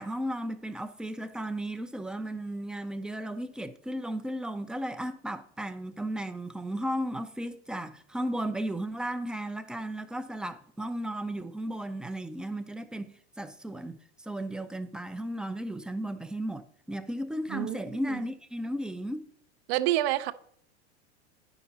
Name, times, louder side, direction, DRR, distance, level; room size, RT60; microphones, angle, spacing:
voice 1, 0.0-19.2, right 1 dB, ahead, 0.4 m, -35 dB
voice 2, 17.5-17.8 19.7-20.3, right 15 dB, 60° right, 0.7 m, -27 dB
9.3 x 5.9 x 4.0 m
hypercardioid pair, 105°, 34 cm